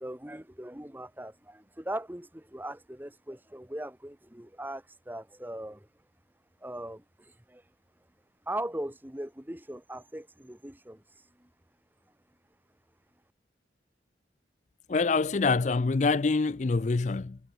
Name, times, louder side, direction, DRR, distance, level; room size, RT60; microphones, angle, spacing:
voice 1, 0.0-5.9 6.6-7.6 8.5-11.0 11.4-11.5, right 1 dB, 10° right, 1.4 m, -39 dB
voice 2, 14.9-17.4, left 4 dB, 40° left, 0.4 m, -25 dB
head